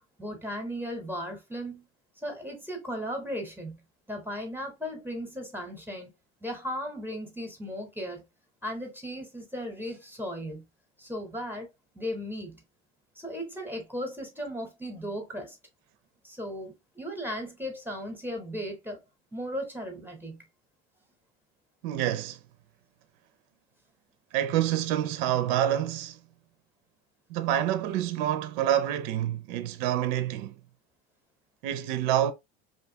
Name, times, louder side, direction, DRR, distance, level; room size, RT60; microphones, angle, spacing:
voice 1, 0.2-1.9 2.2-3.8 4.1-6.1 6.4-8.2 8.6-10.6 11.0-11.7 11.9-12.6 13.2-15.6 16.2-19.0 19.3-20.5, equal, 5° right, 0.8 m, -36 dB
voice 2, 21.8-22.4 24.3-26.2 27.3-30.6 31.6-32.3, right 11 dB, 70° right, 0.5 m, -27 dB
2.6 x 2.3 x 2.7 m
supercardioid pair, 95°, 31 cm